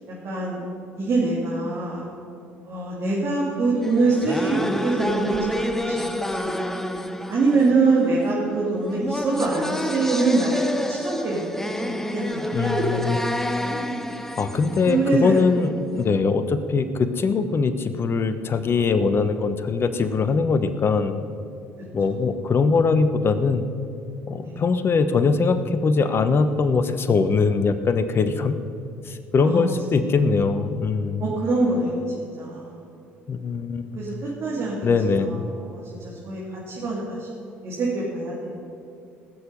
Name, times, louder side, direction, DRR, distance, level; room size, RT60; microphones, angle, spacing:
voice 1, 0.1-0.6 0.9-2.0 2.6-6.1 6.4-6.6 7.3-13.1 13.5-13.7 14.9-15.4 15.9-16.0 24.4-24.7 29.4-30.0 31.2-32.0 32.4-32.9 33.9-35.4 35.7-37.3 37.6-38.6, right 3 dB, 45° right, -6 dB, 3.0 m, -24 dB
sound 1, 3.8-15.7, left 1 dB, 5° left, 0.8 m, -29 dB
voice 2, 12.5-13.2 14.4-21.2 21.9-23.7 24.3-28.6 29.1-31.2 33.3-34.0 34.8-35.3, left 4 dB, 40° left, 11 dB, 1.0 m, -22 dB
20.0 x 6.9 x 5.4 m, 2.7 s
hypercardioid pair, 55°, 6 cm